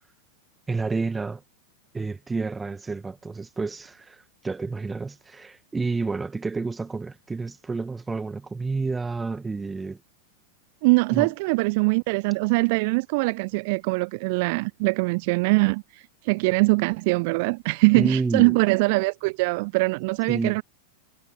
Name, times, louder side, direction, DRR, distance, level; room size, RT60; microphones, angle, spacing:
voice 1, 0.7-1.4 1.9-10.0 11.1-11.3 17.9-18.6 20.3-20.6, right 4 dB, 10° right, 1.6 m, -29 dB
voice 2, 10.8-20.6, right 27 dB, 45° right, 0.4 m, -22 dB
figure-of-eight pair, 90°, 0 cm